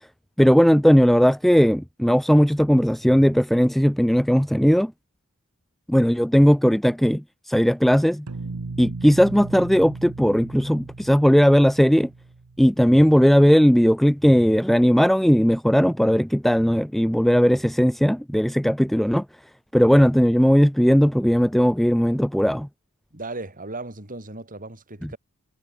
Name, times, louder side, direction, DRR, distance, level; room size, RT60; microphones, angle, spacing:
voice 1, 0.4-4.9 5.9-8.3 8.8-12.1 12.6-19.3 19.7-22.7 25.0-25.1, equal, ahead, 0.3 m, -18 dB
sound 1, 8.3-13.2, right 3 dB, 85° right, 0.8 m, -37 dB
voice 2, 23.1-25.2, right 2 dB, 40° right, 5.9 m, -36 dB
head